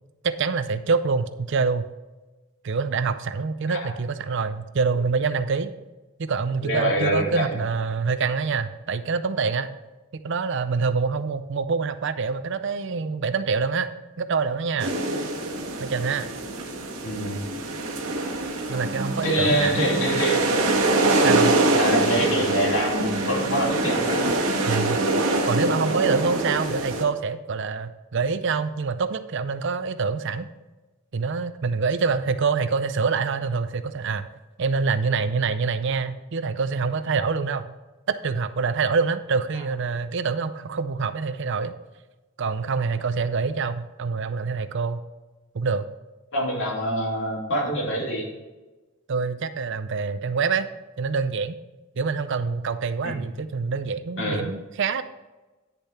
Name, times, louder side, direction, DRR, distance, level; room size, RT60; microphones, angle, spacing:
voice 1, 0.2-1.8 2.6-5.7 6.2-9.7 10.2-13.9 14.2-14.9 15.8-16.3 18.7-19.9 21.2-21.6 24.7-25.0 25.4-30.5 31.1-34.3 34.6-37.7 38.1-41.7 42.4-45.0 45.5-45.9 49.1-50.7 51.0-51.6 52.0-55.0, right 5 dB, 55° right, 12 dB, 0.5 m, -26 dB
voice 2, 6.6-7.4 17.0-17.4 19.2-20.6 21.7-24.2 46.3-48.3 53.0-53.1 54.2-54.5, right 1 dB, 60° left, -3 dB, 3.0 m, -25 dB
sound 1, 14.8-27.0, right 2 dB, 90° right, 1.6 m, -24 dB
sound 2, 18.6-26.6, right 2 dB, 30° right, 1.5 m, -34 dB
10.0 x 6.8 x 4.3 m, 1.2 s
head